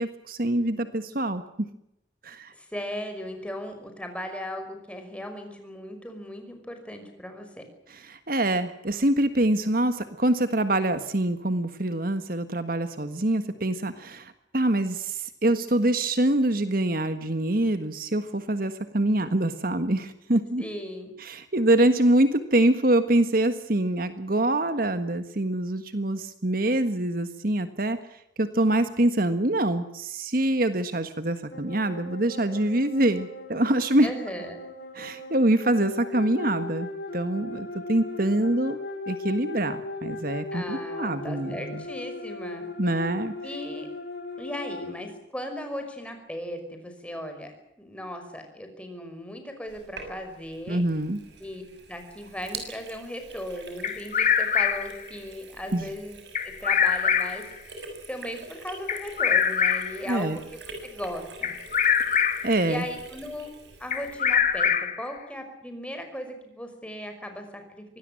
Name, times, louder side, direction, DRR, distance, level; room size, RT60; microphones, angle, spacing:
voice 1, 0.0-1.4 2.2-2.5 7.9-20.6 21.2-28.0 28.4-34.1 34.9-38.8 39.1-41.9 42.8-43.3 50.7-51.2 55.7-55.8 60.1-60.4 62.4-62.8, right 1 dB, 50° right, 10 dB, 1.5 m, -25 dB
voice 2, 2.6-7.6 20.6-21.1 34.0-34.6 40.5-42.7 43.4-43.9 44.4-50.8 51.4-51.6 51.9-56.2 56.4-57.4 58.1-61.5 62.7-63.5 63.8-67.8, equal, 5° left, 5 dB, 5.5 m, -37 dB
sound 1, 31.5-44.9, left 2 dB, 65° left, 6.6 m, -38 dB
Sink (filling or washing), 49.7-64.8, right 4 dB, 70° right, 6.7 m, -45 dB
Bird vocalization bird call bird song, 53.8-55.0 56.4-57.5 58.9-60.1 61.4-62.6 63.9-65.1, left 7 dB, 40° left, 1.9 m, -24 dB
25.0 x 19.5 x 7.6 m, 0.84 s
head